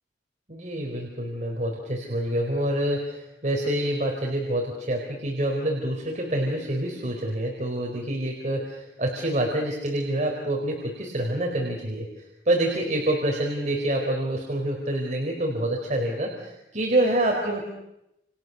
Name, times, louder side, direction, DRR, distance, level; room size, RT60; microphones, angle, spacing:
voice 1, 0.5-17.6, right 1 dB, 40° right, 1 dB, 4.3 m, -27 dB
29.5 x 29.0 x 6.9 m, 0.88 s
head